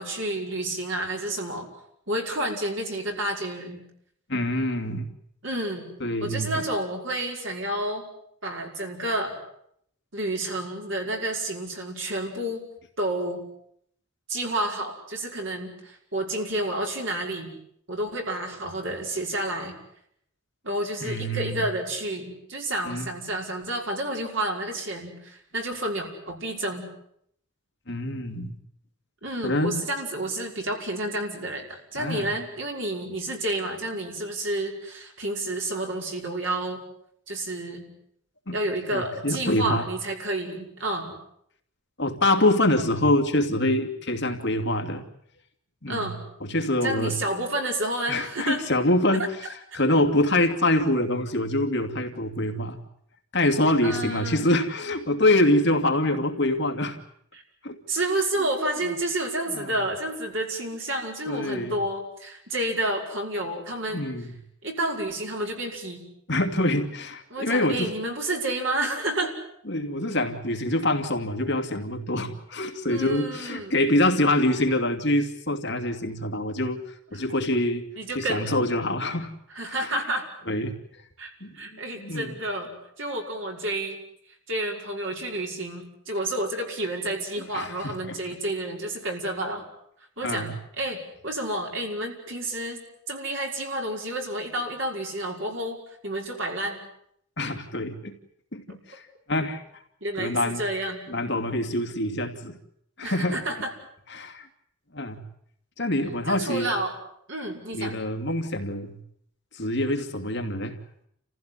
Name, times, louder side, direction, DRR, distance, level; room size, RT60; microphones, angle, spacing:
voice 1, 0.0-1.7 2.1-3.8 5.4-5.9 6.2-8.1 8.4-9.4 10.1-12.7 13.0-13.4 14.3-17.5 17.9-19.8 20.6-26.8 29.2-36.8 37.3-37.9 38.5-41.2 45.9-46.2 46.8-48.6 53.8-54.5 57.3-57.4 57.9-64.1 64.6-66.0 67.3-69.3 72.9-73.8 77.1-77.2 78.0-78.5 79.5-80.3 81.2-84.0 84.5-89.6 90.2-96.8 100.0-101.0 103.0-103.7 106.3-107.0 107.3-107.9, right 1 dB, 55° right, 2 dB, 5.6 m, -30 dB
voice 2, 4.3-5.1 6.0-6.6 21.0-21.6 22.9-23.1 27.9-28.5 29.4-29.8 32.0-32.3 38.5-38.6 38.9-39.8 42.0-45.0 45.8-46.1 46.4-47.1 48.1-49.5 49.7-52.8 53.3-57.0 57.6-57.8 59.5-59.7 61.3-61.7 63.9-64.3 66.3-67.9 69.7-76.8 77.1-77.9 78.1-79.3 79.8-79.9 80.5-80.8 81.4-81.6 82.0-82.3 87.5-88.2 90.2-90.5 97.4-98.1 98.5-99.0 99.3-99.6 100.2-100.6 101.1-102.6 103.0-103.4 104.1-104.5 104.9-105.2 105.8-106.7 107.7-109.0 109.5-110.8, left 1 dB, 55° left, 4 dB, 2.6 m, -25 dB
29.5 x 15.5 x 9.8 m, 0.72 s
head